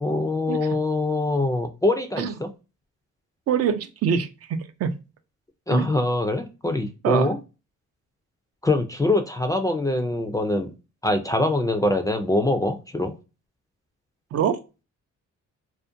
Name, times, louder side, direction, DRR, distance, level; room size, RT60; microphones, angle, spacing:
voice 1, 0.0-2.5 5.7-7.4 8.6-10.7 11.0-13.1, left 2 dB, 10° left, 7 dB, 0.3 m, -23 dB
voice 2, 3.5-4.3 4.8-4.9 5.7-5.9 7.0-7.3 14.3-14.6, right 8 dB, 55° right, 9 dB, 0.4 m, -23 dB
2.5 x 2.1 x 2.5 m, 0.30 s
cardioid pair, 90°, 30 cm